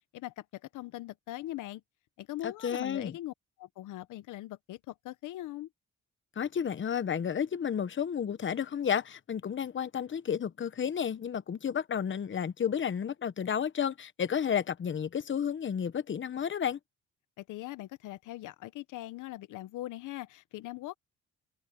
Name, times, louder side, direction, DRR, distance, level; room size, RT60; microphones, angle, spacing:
voice 1, 0.1-1.8 2.2-5.7 17.4-20.9, left 15 dB, 85° left, 0.9 m, -41 dB
voice 2, 2.4-3.1 6.4-16.8, left 8 dB, 40° left, 1.1 m, -32 dB
cardioid pair, 90°, 30 cm